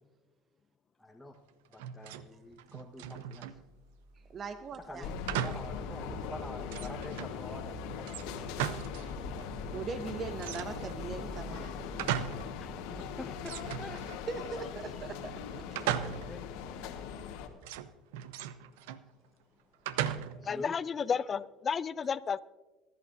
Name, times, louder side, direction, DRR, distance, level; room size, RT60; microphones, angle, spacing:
voice 1, 1.0-1.3 1.7-3.6 4.9-8.6 12.8-14.0 14.3-14.4 15.5-17.7 20.3-20.7, left 2 dB, 5° left, -2 dB, 1.1 m, -47 dB
sound 1, 1.7-2.3 2.6-3.6 5.3-5.8 6.2-6.3 6.7-7.4 8.1-9.1 9.4-9.5 10.4-11.0 11.6-12.5 12.9-13.0 13.4-14.5 15.8-16.5 17.6-19.1 19.9-20.5, right 10 dB, 75° right, 0.5 m, -37 dB
sound 2, 3.5-16.6, right 2 dB, 20° right, 1.7 m, -51 dB
voice 2, 4.3-5.1 9.7-11.7 14.3-15.3 15.8-15.9, right 4 dB, 40° right, 11 dB, 0.7 m, -40 dB
sound 3, 5.0-17.5, left 6 dB, 70° left, 1.3 m, -40 dB
voice 3, 20.4-22.4, left 6 dB, 35° left, 17 dB, 0.4 m, -32 dB
22.5 x 11.0 x 2.6 m, 1.2 s
hypercardioid pair, 75°, 0 cm